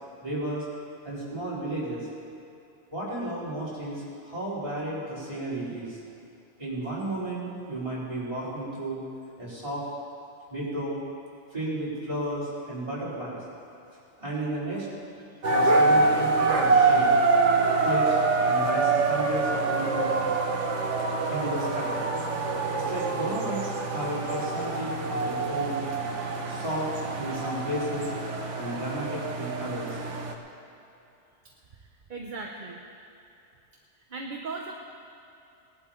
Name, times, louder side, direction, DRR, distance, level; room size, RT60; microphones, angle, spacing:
voice 1, 0.2-0.7 1.0-2.1 2.9-6.0 6.6-9.0 9.4-9.9 10.5-11.0 11.5-13.4 14.2-14.9 15.5-17.1 17.8-20.1 21.3-22.0 22.7-25.8 26.5-28.1 28.5-30.0, right 1 dB, 25° right, -9 dB, 4.6 m, -33 dB
voice 2, 15.2-16.1 31.8-32.8 34.1-34.7, right 3 dB, 45° right, 1 dB, 0.9 m, -39 dB
sound 1, 15.4-30.3, right 3 dB, 80° right, 1.4 m, -25 dB
19.5 x 11.5 x 4.5 m, 2.7 s
omnidirectional pair, 1.2 m